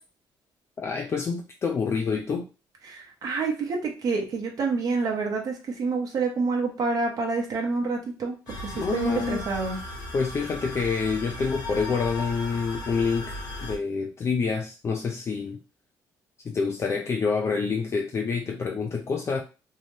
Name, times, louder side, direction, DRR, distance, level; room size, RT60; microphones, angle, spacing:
voice 1, 0.8-2.5 8.7-9.5 10.1-15.6 16.4-19.4, left 5 dB, 35° left, 2 dB, 0.4 m, -27 dB
voice 2, 2.8-9.8, right 4 dB, 50° right, 1 dB, 0.8 m, -28 dB
sound 1, 8.5-13.8, left 1 dB, 60° left, 1.0 m, -36 dB
2.7 x 2.1 x 3.2 m, 0.32 s
cardioid pair, 100°, 8 cm